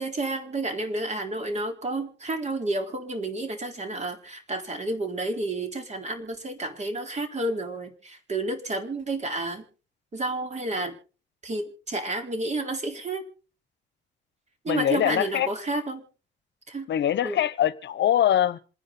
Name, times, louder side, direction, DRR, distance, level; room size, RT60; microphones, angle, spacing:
voice 1, 0.0-9.6 10.1-10.9 11.4-13.2 14.6-16.0 16.7-16.9 17.2-17.4, right 2 dB, 35° right, 3.9 m, -30 dB
voice 2, 14.7-15.5 16.9-18.6, left 11 dB, 65° left, 1.0 m, -23 dB
27.0 x 10.5 x 3.9 m
cardioid pair, 90°, 20 cm